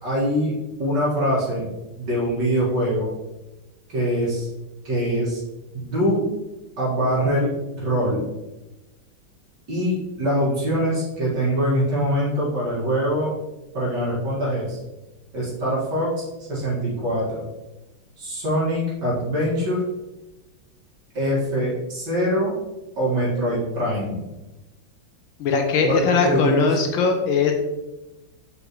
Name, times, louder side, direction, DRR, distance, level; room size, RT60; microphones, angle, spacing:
voice 1, 0.0-0.5 0.8-1.7 2.0-3.1 3.9-4.5 4.8-5.4 5.7-6.2 6.8-8.2 9.7-13.3 13.7-14.8 15.3-17.4 18.2-19.8 21.1-22.5 23.0-24.3 25.8-26.7, equal, 55° right, -5 dB, 2.6 m, -23 dB
voice 2, 25.4-27.5, left 5 dB, 70° left, 4 dB, 1.5 m, -20 dB
7.0 x 5.3 x 3.1 m, 1.0 s
omnidirectional pair, 2.3 m